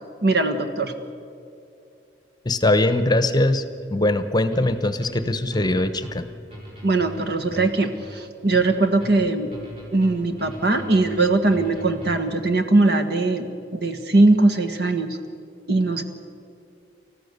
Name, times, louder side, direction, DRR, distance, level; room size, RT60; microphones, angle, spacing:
voice 1, 0.2-0.9 6.8-9.5 9.9-15.2 15.7-16.0, right 2 dB, 60° right, 8 dB, 1.7 m, -20 dB
voice 2, 2.4-3.6 3.9-6.2, left 1 dB, 25° left, 11 dB, 1.0 m, -21 dB
sound 1, 4.5-12.4, equal, 30° right, 6.3 m, -40 dB
29.5 x 14.5 x 6.8 m, 2.6 s
head